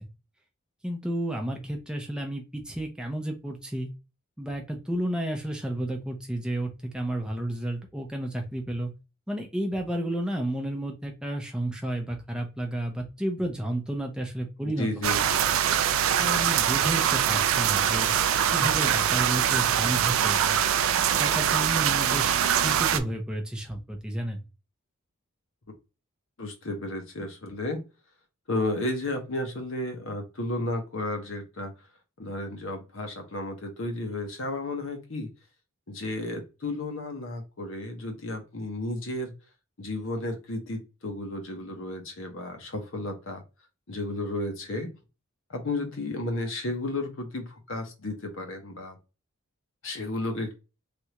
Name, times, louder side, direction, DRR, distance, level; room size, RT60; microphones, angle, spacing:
voice 1, 0.8-3.9 4.4-8.9 9.3-14.9 16.2-18.1 18.5-20.6 21.1-24.4, right 1 dB, 5° right, 0.6 m, -31 dB
voice 2, 14.6-15.4 26.4-27.8 28.5-31.7 32.2-35.3 35.9-39.3 39.8-43.4 43.9-44.9 45.5-49.0 49.8-50.6, left 2 dB, 60° left, 0.9 m, -33 dB
sound 1, 15.0-23.0, right 9 dB, 70° right, 0.3 m, -23 dB
3.3 x 2.6 x 2.9 m
head